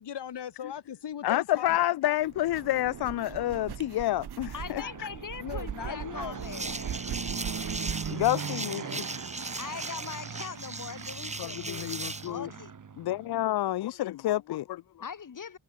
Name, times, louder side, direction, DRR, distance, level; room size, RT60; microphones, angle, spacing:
voice 1, 0.0-1.9 4.6-5.1 5.4-6.4, left 9 dB, 85° left, 4.3 m, -39 dB
voice 2, 1.2-5.1 8.1-9.1 11.4-12.5 13.0-14.8, left 14 dB, 70° left, 0.5 m, -29 dB
sound 1, 2.2-8.3, right 9 dB, 70° right, 1.7 m, -41 dB
Fixed-wing aircraft airplane, 2.3-13.4, right 6 dB, 50° right, 5.9 m, -41 dB
voice 3, 4.5-7.0 9.3-11.9 12.2-12.7 15.0-15.6, left 6 dB, 50° left, 7.4 m, -41 dB
sound 2, 6.4-12.3, right 2 dB, 15° right, 3.7 m, -38 dB
wide cardioid pair, 175°, 40 cm